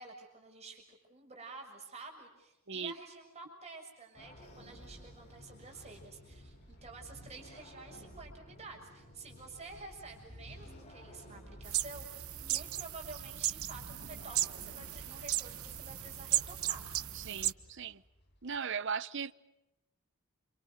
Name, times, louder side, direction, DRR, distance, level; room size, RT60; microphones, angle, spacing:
voice 1, 0.0-16.8, right 3 dB, 30° right, 6.6 m, -50 dB
sound 1, 4.1-17.1, equal, 30° left, 7.7 m, -54 dB
Train / Sliding door, 4.2-8.2 9.0-13.9 14.7-18.6, left 1 dB, 50° left, 3.3 m, -62 dB
sound 2, 11.6-17.5, right 14 dB, 90° right, 1.0 m, -36 dB
voice 2, 17.1-18.0 18.4-19.3, right 6 dB, 55° right, 0.9 m, -37 dB
28.5 x 28.0 x 6.6 m
head